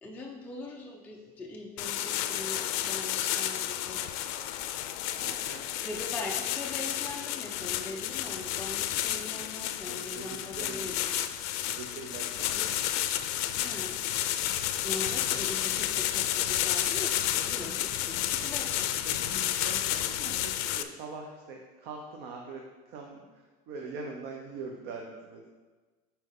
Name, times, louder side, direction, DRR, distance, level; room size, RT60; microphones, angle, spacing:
voice 1, 0.0-4.0 5.8-11.1 13.5-14.0 14.8-18.9, left 2 dB, 10° left, -1 dB, 0.5 m, -41 dB
sound 1, 1.8-20.8, left 12 dB, 70° left, 0.5 m, -31 dB
voice 2, 5.2-5.6 9.9-10.8 11.7-12.9 17.5-17.8 18.4-18.5 19.1-22.6 22.9-25.5, right 4 dB, 50° right, 1 dB, 0.8 m, -43 dB
9.5 x 4.4 x 3.8 m, 1.3 s
cardioid pair, 150°, 20 cm